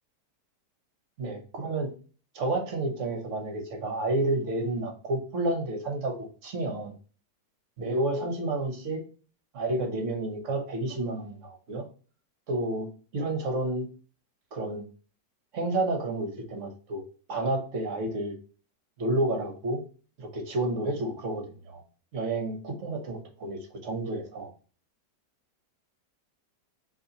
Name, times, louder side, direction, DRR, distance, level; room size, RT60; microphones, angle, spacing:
voice 1, 1.2-1.9 2.3-6.9 7.8-9.0 9.5-11.9 12.5-13.9 14.5-14.8 15.5-17.0 17.3-18.3 19.0-19.8 20.2-21.8 22.1-24.5, right 2 dB, 50° right, 4 dB, 1.2 m, -30 dB
5.4 x 3.0 x 2.9 m, 0.38 s
omnidirectional pair, 1.9 m